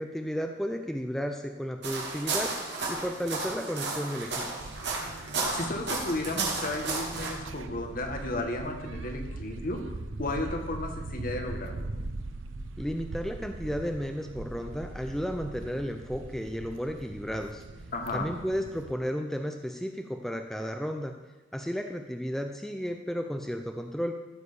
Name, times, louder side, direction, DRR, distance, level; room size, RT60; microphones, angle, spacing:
voice 1, 0.0-4.5 12.8-17.6 18.1-21.2 21.5-24.1, equal, ahead, 4 dB, 0.6 m, -33 dB
sound 1, 1.8-7.3, right 3 dB, 65° right, 2.8 m, -33 dB
sound 2, 4.6-18.9, right 2 dB, 90° right, 0.7 m, -41 dB
voice 2, 5.2-9.8 10.2-11.9 17.9-18.3, left 2 dB, 50° left, 3 dB, 1.8 m, -34 dB
14.5 x 6.6 x 6.9 m, 1.1 s
head